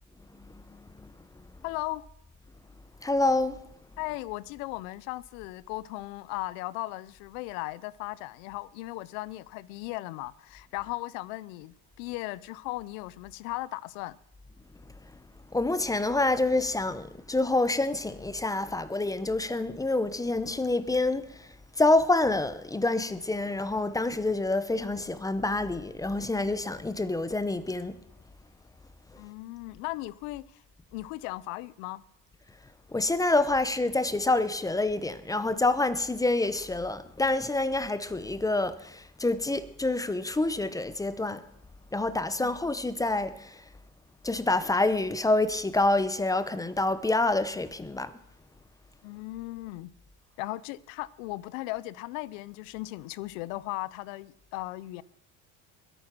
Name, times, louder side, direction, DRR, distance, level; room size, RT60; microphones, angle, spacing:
voice 1, 0.4-1.1 3.0-3.6 15.5-28.0 32.9-41.4 41.9-43.6 44.2-48.1, left 2 dB, 10° left, 0.7 m, -27 dB
voice 2, 1.6-2.1 4.0-14.2 29.2-30.6 30.9-32.0 42.4-42.6 49.0-49.9 50.4-55.0, left 19 dB, 80° left, 0.8 m, -37 dB
21.5 x 9.2 x 6.1 m
cardioid pair, 135°, 39 cm